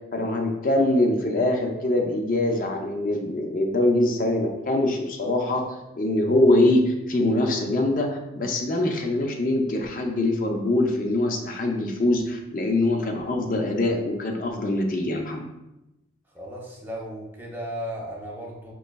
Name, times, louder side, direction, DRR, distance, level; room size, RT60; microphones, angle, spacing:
voice 1, 0.1-5.6 5.9-15.4, left 1 dB, 45° left, 2 dB, 0.4 m, -23 dB
voice 2, 16.3-18.7, equal, 10° right, -2 dB, 0.5 m, -35 dB
5.1 x 3.0 x 2.2 m, 0.93 s
head